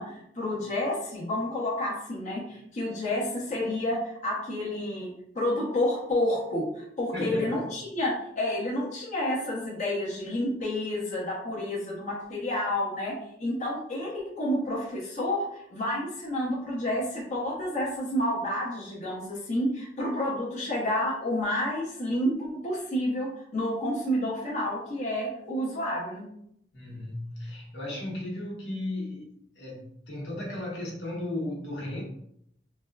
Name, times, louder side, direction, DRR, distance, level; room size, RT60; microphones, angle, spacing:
voice 1, 0.0-5.1 5.3-26.3, left 1 dB, 40° left, -5 dB, 0.8 m, -30 dB
voice 2, 7.1-7.6 26.7-32.0, left 1 dB, 70° left, -3 dB, 1.0 m, -35 dB
4.2 x 2.3 x 2.2 m, 0.72 s
head